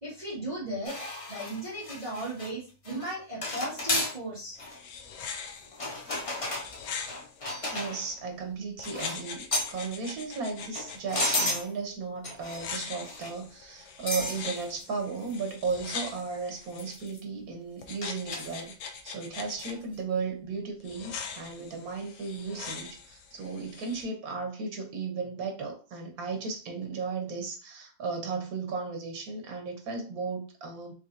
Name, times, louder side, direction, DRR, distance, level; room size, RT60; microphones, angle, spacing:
voice 1, 0.0-1.0 1.3-4.6, right 1 dB, 30° right, 1.9 m, -36 dB
sound 1, 0.8-2.5 2.8-3.1 3.4-4.2 4.6-4.8 5.7-8.1 8.8-9.2 9.5-9.8 10.6-11.7 12.2-12.7 13.0-13.4 14.1-14.4 14.8-14.9 15.3-15.4 15.7-15.8 16.8-17.2 18.0-18.6 19.6-19.8, left 2 dB, 35° left, 0.6 m, -33 dB
sound 2, 4.6-8.1 8.8-11.0 12.4-17.1 17.8-19.7 20.8-24.0, left 6 dB, 85° left, 1.1 m, -42 dB
voice 2, 7.7-18.7 19.0-30.9, right 4 dB, 85° right, 1.4 m, -35 dB
4.2 x 3.0 x 2.6 m
omnidirectional pair, 1.5 m